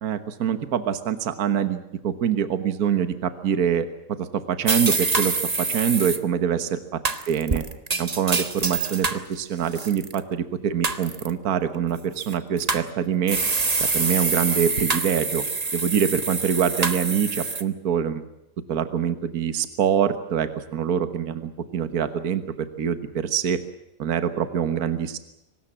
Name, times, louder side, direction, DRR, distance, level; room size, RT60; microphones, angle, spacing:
voice 1, 0.0-3.9 4.2-5.4 5.7-6.8 7.3-7.6 8.0-13.4 13.8-15.4 15.7-18.2 18.7-23.6 24.0-25.2, right 8 dB, 60° right, 10 dB, 1.7 m, -25 dB
sound 1, 4.7-6.2 7.1-9.2 9.7-10.2 10.8-11.3 12.2-12.9 13.3-17.6, right 3 dB, 25° right, 1.2 m, -26 dB
24.0 x 20.0 x 7.4 m, 0.89 s
omnidirectional pair, 1.8 m